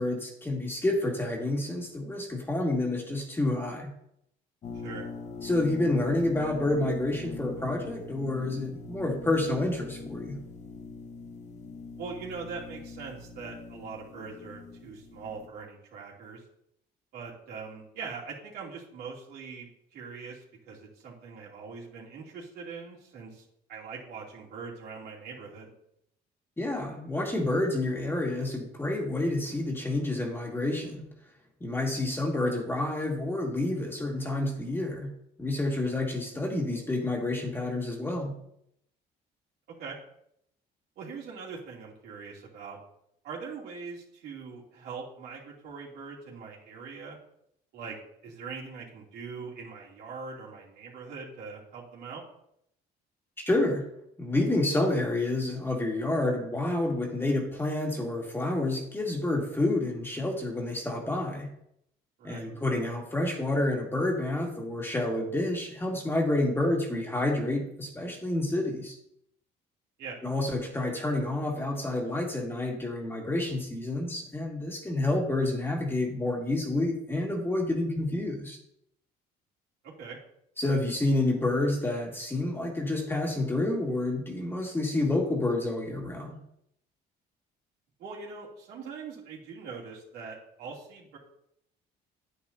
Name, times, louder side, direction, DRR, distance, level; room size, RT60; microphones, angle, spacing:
voice 1, 0.0-3.9 5.4-10.4 26.6-31.0 31.6-35.1 35.4-38.4 53.4-53.8 54.2-61.5 62.2-69.0 70.2-78.6 80.6-86.4, left 2 dB, 15° left, 0 dB, 2.1 m, -29 dB
sound 1, 4.6-15.5, left 4 dB, 45° left, 1.2 m, -42 dB
voice 2, 4.7-5.1 12.0-16.4 17.1-25.7 35.7-36.0 39.8-40.0 41.0-42.8 43.2-47.2 47.7-48.0 48.2-52.2 62.2-62.5 70.0-70.2 79.8-80.2 88.0-91.2, right 5 dB, 75° right, -4 dB, 3.0 m, -42 dB
9.7 x 9.1 x 2.8 m, 0.74 s
cardioid pair, 110°, 17 cm